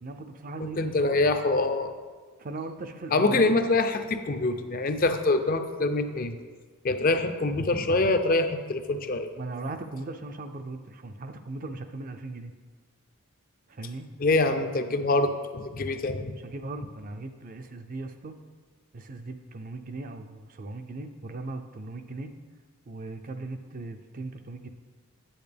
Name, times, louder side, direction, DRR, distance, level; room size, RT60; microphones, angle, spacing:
voice 1, 0.0-1.2 2.4-3.5 9.4-12.5 13.7-14.1 16.4-18.3 18.9-22.3 22.9-24.7, right 2 dB, 40° right, 8 dB, 0.4 m, -38 dB
voice 2, 0.6-1.9 3.1-6.4 6.8-9.3 14.2-16.3, left 2 dB, 40° left, 8 dB, 0.5 m, -25 dB
8.7 x 8.4 x 3.4 m, 1.5 s
head